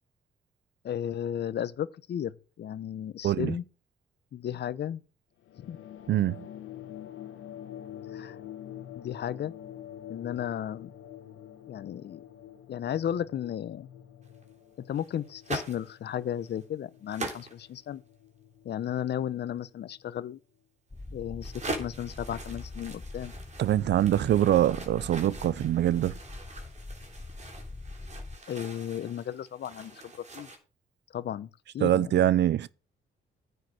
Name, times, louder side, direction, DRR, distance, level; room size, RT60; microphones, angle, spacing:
voice 1, 0.8-2.3 2.6-3.6 4.3-5.0 5.6-5.8 8.1-8.4 8.9-9.5 10.1-10.9 11.7-12.2 12.7-13.9 14.9-18.0 18.6-20.4 21.1-23.3 28.5-30.5 31.1-32.1, left 10 dB, 60° left, 0.8 m, -34 dB
voice 2, 3.2-3.6 6.1-6.5 23.6-26.2 31.8-32.7, right 12 dB, 60° right, 0.6 m, -24 dB
sound 1, 5.4-20.3, left 10 dB, 85° left, 1.6 m, -47 dB
sound 2, 14.2-14.5 14.9-16.0 16.3-16.6 17.1-17.8 21.0-21.1 21.4-30.6, right 2 dB, 35° right, 3.4 m, -42 dB
sound 3, 20.9-28.4, left 2 dB, 15° left, 0.5 m, -43 dB
9.6 x 6.5 x 6.3 m
cardioid pair, 90°, 20 cm